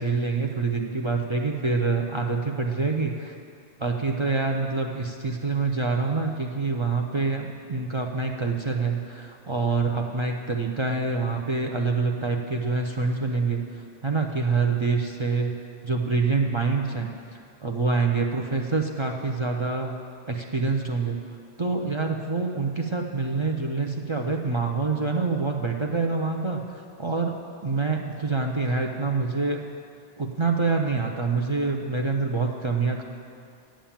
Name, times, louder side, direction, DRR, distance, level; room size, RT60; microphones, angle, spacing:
voice 1, 0.0-3.4 3.8-15.5 15.8-19.9 20.3-21.2 21.6-27.3 27.6-29.6 30.2-33.0, right 4 dB, 40° right, 1 dB, 0.4 m, -26 dB
8.8 x 7.3 x 7.2 m, 2.3 s
omnidirectional pair, 1.2 m